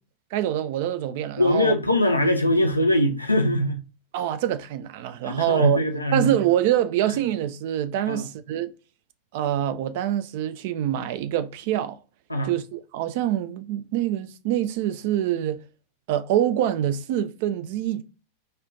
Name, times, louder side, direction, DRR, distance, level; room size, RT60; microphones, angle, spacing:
voice 1, 0.3-1.8 4.1-5.8 6.1-8.7 9.3-12.0 12.4-15.6 16.1-18.0, right 11 dB, 50° right, 0.4 m, -25 dB
voice 2, 1.4-3.8 5.2-6.3 8.1-8.3 12.3-12.5, left 1 dB, 85° left, 0.4 m, -22 dB
4.2 x 2.5 x 2.6 m
figure-of-eight pair, 90°, 0 cm